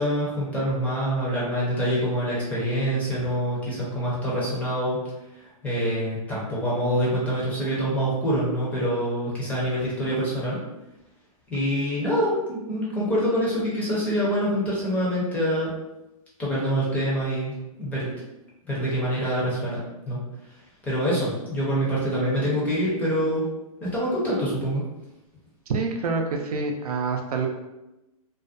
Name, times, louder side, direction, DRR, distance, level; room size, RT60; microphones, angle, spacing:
voice 1, 0.0-5.0 5.6-10.6 11.5-15.7 16.4-18.1 18.7-20.2 20.8-23.4 23.9-24.8, equal, 10° left, -7 dB, 0.5 m, -25 dB
voice 2, 25.7-27.5, right 4 dB, 85° right, 3 dB, 0.5 m, -27 dB
2.4 x 2.1 x 2.5 m, 0.96 s
hypercardioid pair, 155°, 19 cm